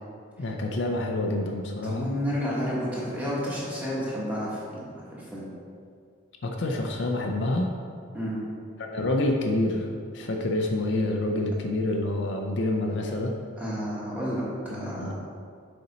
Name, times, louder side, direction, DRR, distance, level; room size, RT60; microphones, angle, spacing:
voice 1, 0.4-2.1 6.4-7.7 8.8-13.4 14.7-15.1, left 1 dB, 60° left, 2 dB, 0.5 m, -27 dB
voice 2, 1.8-5.4 8.1-8.4 13.6-15.1, equal, 5° right, -8 dB, 1.5 m, -31 dB
6.6 x 4.3 x 4.2 m, 2.3 s
head